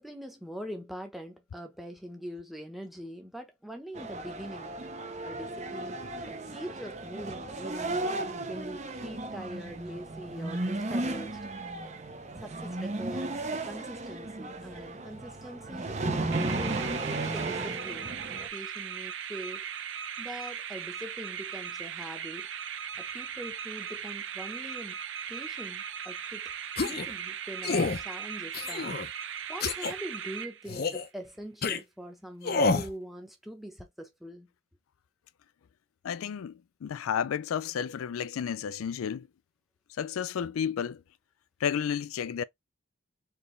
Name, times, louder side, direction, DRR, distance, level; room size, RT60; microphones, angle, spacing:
voice 1, 0.0-4.8 5.2-8.2 8.5-11.5 12.1-16.0 16.5-19.7 20.2-22.5 23.0-25.0 25.3-26.5 26.8-28.9 29.5-34.5, equal, ahead, 1.0 m, -43 dB
sound 1, 4.0-18.5, right 2 dB, 35° right, 0.8 m, -35 dB
sound 2, 16.3-31.0, right 8 dB, 65° right, 0.6 m, -38 dB
sound 3, 26.8-27.1 27.6-28.0 28.5-29.1 29.6-29.9 30.7-31.1 31.6-31.8 32.4-32.9, left 3 dB, 50° left, 0.6 m, -28 dB
voice 2, 36.0-39.3 40.0-41.0 41.6-42.4, left 8 dB, 90° left, 0.4 m, -32 dB
4.6 x 3.2 x 3.2 m
head